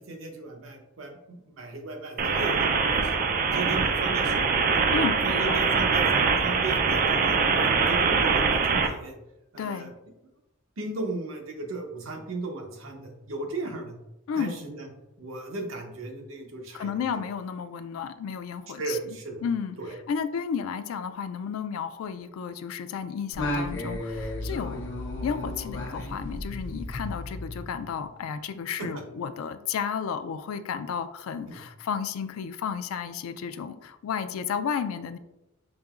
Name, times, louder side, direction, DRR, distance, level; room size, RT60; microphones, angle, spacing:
voice 1, 0.0-3.2 3.5-4.5 5.2-7.4 7.9-9.1 9.5-9.9 10.8-13.9 14.4-14.9 15.2-16.9 18.8-19.4 19.8-20.0 28.8-28.9 31.5-31.6, right 2 dB, 75° right, 2 dB, 0.8 m, -36 dB
sound 1, 2.2-8.9, right 5 dB, 45° right, 0.3 m, -23 dB
voice 2, 4.9-5.6 9.6-9.9 14.3-14.5 16.7-19.2 19.4-35.2, left 7 dB, 90° left, 11 dB, 0.3 m, -32 dB
Singing, 23.3-28.1, left 1 dB, 65° left, 0.8 m, -34 dB
5.1 x 2.8 x 2.4 m, 0.94 s
head